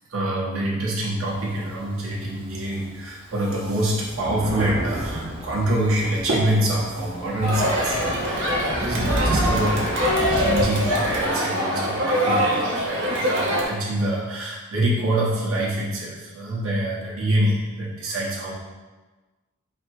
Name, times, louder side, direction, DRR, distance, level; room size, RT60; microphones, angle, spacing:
voice 1, 0.1-10.0 10.3-18.5, right 1 dB, 90° right, -5 dB, 1.0 m, -25 dB
Thunder, 1.2-2.5 3.1-3.2 3.4-11.2, right 1 dB, 30° right, 0.5 m, -30 dB
Crowd, 7.4-13.6, equal, 65° right, 0.7 m, -23 dB
4.2 x 2.0 x 4.5 m, 1.3 s
head